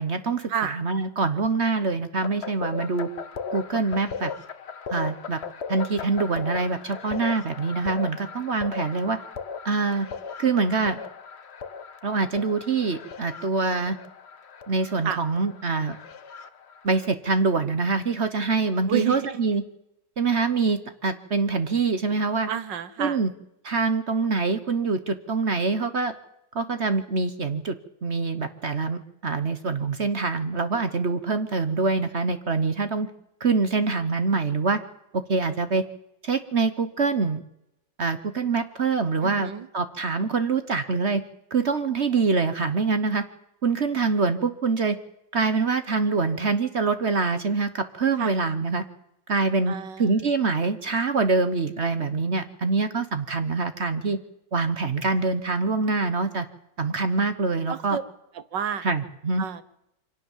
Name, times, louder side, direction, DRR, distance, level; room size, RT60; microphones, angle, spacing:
voice 1, 0.0-3.1 3.5-4.3 4.9-5.4 5.7-9.2 9.6-10.1 10.4-11.0 12.0-14.0 14.7-16.0 16.8-19.6 20.2-22.5 23.0-23.3 23.6-26.1 26.5-27.7 28.0-33.1 33.4-34.8 35.3-35.8 36.2-37.4 38.0-41.2 41.5-43.2 43.6-45.0 45.3-48.8 49.3-54.2 54.5-56.5 56.8-58.0 58.8-59.5, right 4 dB, 45° right, 11 dB, 1.1 m, -25 dB
sound 1, 2.2-17.1, left 6 dB, 45° left, 1.1 m, -37 dB
voice 2, 18.9-19.4 22.5-23.2 39.2-39.7 48.2-48.4 49.7-50.2 57.7-58.0 58.4-58.9 59.4-59.7, right 8 dB, 75° right, 14 dB, 1.8 m, -30 dB
24.5 x 18.0 x 7.3 m, 0.84 s
omnidirectional pair, 2.0 m